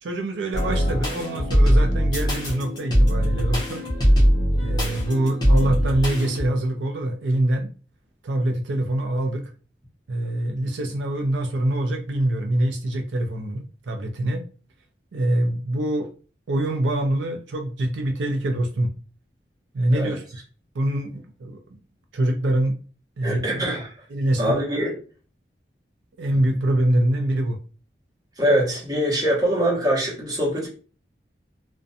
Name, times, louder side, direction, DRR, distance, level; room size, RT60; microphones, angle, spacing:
voice 1, 0.0-3.8 4.6-7.7 8.2-9.5 10.1-14.4 15.1-16.1 16.5-18.9 19.7-20.2 20.7-21.6 22.1-22.7 23.2-23.7 24.1-24.6 26.2-27.6, right 1 dB, 85° right, 3 dB, 0.4 m, -24 dB
sound 1, 0.5-6.5, equal, 25° left, 0.8 m, -21 dB
voice 2, 23.2-23.9 24.4-25.0 28.4-30.7, right 1 dB, 20° right, -4 dB, 1.0 m, -23 dB
2.4 x 2.2 x 2.6 m, 0.36 s
head